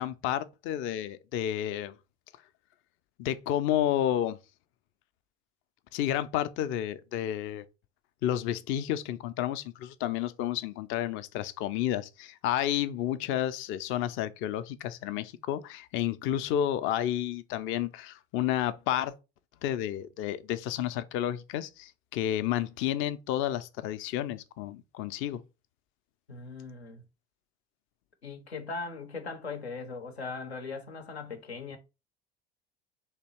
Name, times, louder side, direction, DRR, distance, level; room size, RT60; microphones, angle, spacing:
voice 1, 0.0-2.0 3.2-4.4 5.9-7.6 8.2-19.1 19.6-25.4, left 11 dB, 40° left, 0.4 m, -31 dB
voice 2, 26.3-27.0 28.2-31.8, left 4 dB, 85° left, 0.7 m, -39 dB
3.4 x 2.9 x 4.2 m
figure-of-eight pair, 70°, 31 cm